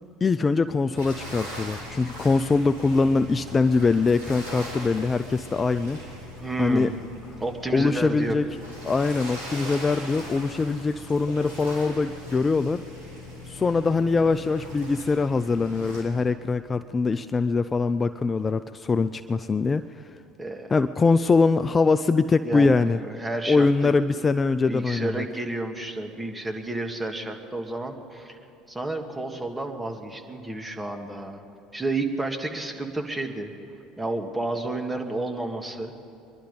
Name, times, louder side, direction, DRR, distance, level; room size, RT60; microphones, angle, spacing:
voice 1, 0.2-6.0 6.6-6.9 7.7-8.4 8.8-12.8 13.5-19.8 20.7-23.0 23.5-25.2, left 4 dB, 25° left, 11 dB, 0.4 m, -23 dB
sound 1, 0.9-16.0, left 1 dB, 85° right, 3.9 m, -40 dB
voice 2, 6.4-7.0 7.4-8.4 20.4-20.7 22.4-24.0 24.7-28.4 28.7-31.4 31.7-33.5 34.0-35.9, right 2 dB, 15° right, 4 dB, 1.7 m, -31 dB
23.0 x 11.5 x 5.3 m, 2.8 s
hypercardioid pair, 75°, 0 cm